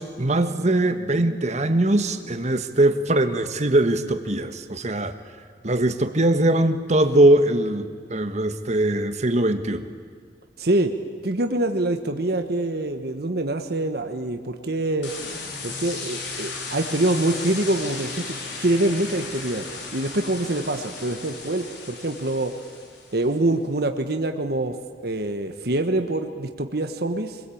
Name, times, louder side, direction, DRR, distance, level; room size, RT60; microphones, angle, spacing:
voice 1, 0.0-5.1 5.6-9.9, right 1 dB, 40° right, 8 dB, 1.5 m, -21 dB
voice 2, 10.6-10.9 11.2-15.1 15.6-19.6 19.9-22.5 23.1-24.7 25.0-27.4, right 1 dB, 60° right, 6 dB, 1.4 m, -25 dB
sound 1, 15.0-23.2, left 4 dB, 85° left, 4.0 m, -35 dB
26.0 x 21.5 x 8.7 m, 2.1 s
head